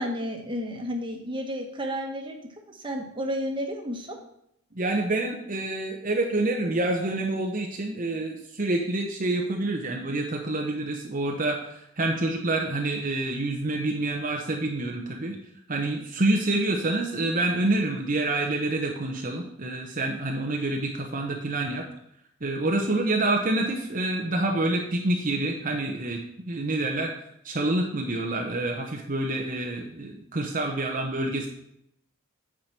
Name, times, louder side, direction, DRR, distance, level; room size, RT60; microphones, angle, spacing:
voice 1, 0.0-2.4 2.7-4.2, equal, 25° right, 2 dB, 1.3 m, -32 dB
voice 2, 4.7-15.4 15.7-21.9 22.4-27.1 27.4-31.5, right 2 dB, 40° right, 1 dB, 0.9 m, -27 dB
9.0 x 4.9 x 5.9 m, 0.76 s
head